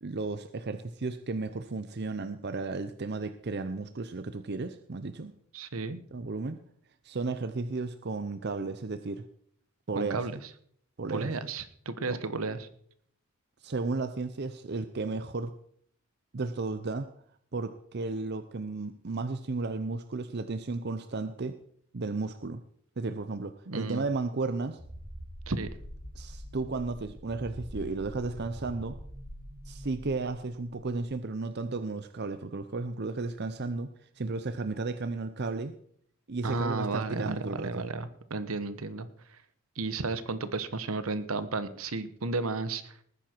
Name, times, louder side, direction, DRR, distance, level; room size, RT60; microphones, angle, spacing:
voice 1, 0.0-5.3 6.1-6.6 7.0-9.2 9.9-10.3 11.0-11.3 12.1-12.2 13.6-15.5 16.3-17.1 17.5-21.6 21.9-22.6 23.0-24.8 26.2-29.0 29.7-33.9 34.2-35.7 36.3-37.9, right 3 dB, 50° right, 11 dB, 0.6 m, -34 dB
voice 2, 5.5-6.0 10.0-10.4 11.1-12.7 23.7-24.0 25.5-25.7 36.4-39.1 39.8-42.9, right 3 dB, 75° right, 13 dB, 1.1 m, -33 dB
sound 1, 24.8-31.0, equal, 25° right, 3.7 m, -44 dB
19.5 x 9.8 x 4.5 m, 0.63 s
head